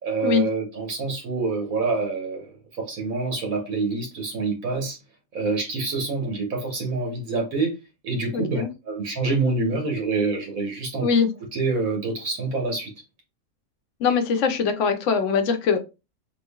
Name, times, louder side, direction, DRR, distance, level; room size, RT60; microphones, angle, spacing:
voice 1, 0.0-5.0 5.3-7.7 8.0-11.1 11.5-12.9, right 3 dB, 70° right, 1.4 m, -26 dB
voice 2, 8.3-8.7 11.0-11.3 14.0-15.8, left 6 dB, 65° left, 0.9 m, -22 dB
3.7 x 3.2 x 2.2 m
omnidirectional pair, 1.5 m